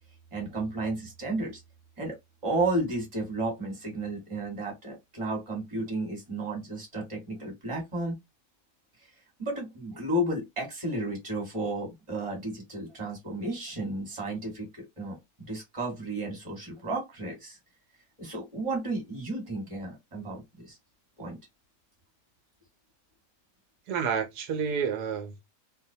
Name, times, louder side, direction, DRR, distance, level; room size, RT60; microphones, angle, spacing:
voice 1, 0.3-1.6 2.0-2.2 2.4-8.2 9.4-15.2 15.5-17.6 18.2-20.8 21.2-21.4, right 2 dB, 20° right, 1.2 m, -33 dB
voice 2, 23.9-25.4, right 6 dB, 80° right, 1.1 m, -30 dB
2.6 x 2.1 x 2.7 m
omnidirectional pair, 1.7 m